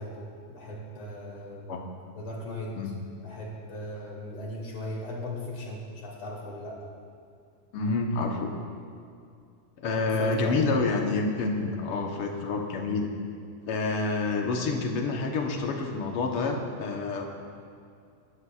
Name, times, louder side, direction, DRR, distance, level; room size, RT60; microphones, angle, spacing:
voice 1, 0.0-1.7 2.2-2.7 3.2-6.8 9.9-10.6, left 1 dB, 45° left, -3 dB, 3.0 m, -38 dB
voice 2, 7.7-8.5 9.8-13.1 13.7-17.2, left 3 dB, 65° left, 1 dB, 1.5 m, -28 dB
21.5 x 12.5 x 2.4 m, 2.4 s
omnidirectional pair, 3.7 m